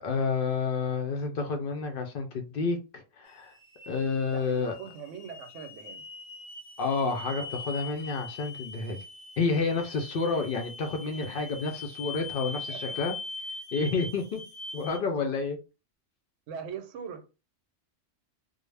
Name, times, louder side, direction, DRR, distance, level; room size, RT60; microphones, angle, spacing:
voice 1, 0.0-3.5 3.9-4.8 6.8-9.0 9.4-13.2 13.7-14.4 14.7-15.6, left 4 dB, 60° left, 0.6 m, -29 dB
sound 1, 3.3-15.0, left 3 dB, 90° left, 1.0 m, -42 dB
voice 2, 4.3-6.0 12.7-13.2 16.5-17.3, right 7 dB, 85° right, 0.9 m, -41 dB
2.4 x 2.0 x 3.2 m
omnidirectional pair, 1.2 m